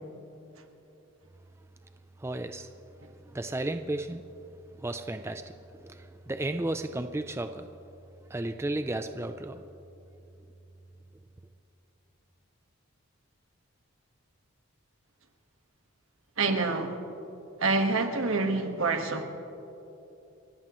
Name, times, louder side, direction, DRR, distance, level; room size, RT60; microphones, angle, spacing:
voice 1, 2.2-2.7 3.2-4.2 4.8-7.7 8.3-9.6, right 1 dB, 10° right, 0.4 m, -34 dB
voice 2, 16.4-17.0 17.6-19.2, right 3 dB, 75° right, 1.5 m, -27 dB
29.5 x 15.0 x 3.1 m
head